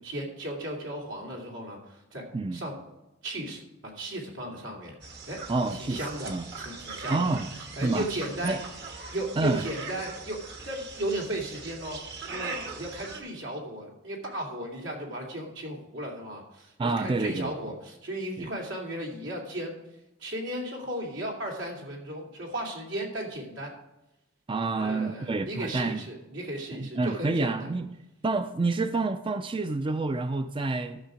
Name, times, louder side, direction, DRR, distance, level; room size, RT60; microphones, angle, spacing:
voice 1, 0.0-2.2 2.5-2.7 3.2-4.9 5.3-5.4 5.7-6.3 6.6-7.3 7.8-8.6 9.1-10.4 10.6-12.0 12.3-19.7 20.2-23.7 24.8-27.7, right 1 dB, 85° right, -1 dB, 2.9 m, -35 dB
sound 1, 5.0-13.2, right 4 dB, 60° right, 1.5 m, -41 dB
voice 2, 5.5-6.0 6.3-6.5 7.1-7.5 7.8-8.1 8.4-8.6 9.4-9.6 16.8-17.6 18.4-18.5 24.5-26.0 26.8-27.9 28.2-31.0, right 3 dB, 25° right, 9 dB, 0.4 m, -28 dB
12.0 x 6.6 x 5.0 m, 0.93 s
head